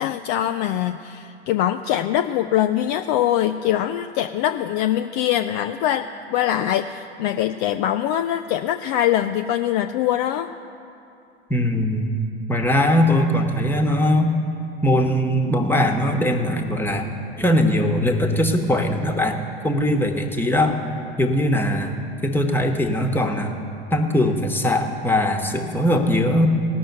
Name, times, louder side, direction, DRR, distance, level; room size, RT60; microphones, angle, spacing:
voice 1, 0.0-10.5, left 11 dB, 45° left, 7 dB, 0.4 m, -23 dB
voice 2, 11.5-12.1 12.5-14.4 14.8-17.1 17.4-20.7 21.2-21.9 22.2-23.6 23.9-26.5, left 1 dB, 5° left, 4 dB, 1.2 m, -20 dB
17.5 x 6.2 x 8.1 m, 2.7 s
figure-of-eight pair, 80°, 33 cm